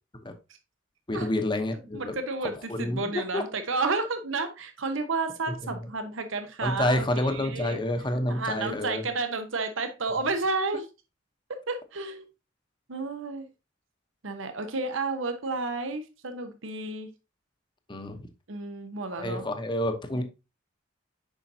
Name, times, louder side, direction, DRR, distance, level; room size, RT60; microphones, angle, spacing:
voice 1, 1.1-2.1 2.7-3.4 5.6-5.8 6.6-9.0 17.9-18.2 19.2-20.2, left 1 dB, 25° left, 0.8 m, -28 dB
voice 2, 1.9-7.8 8.3-10.9 11.5-12.3 12.9-13.5 14.2-17.1 18.5-19.5 20.1-20.2, right 3 dB, 70° right, 0.9 m, -31 dB
7.1 x 5.4 x 2.7 m
head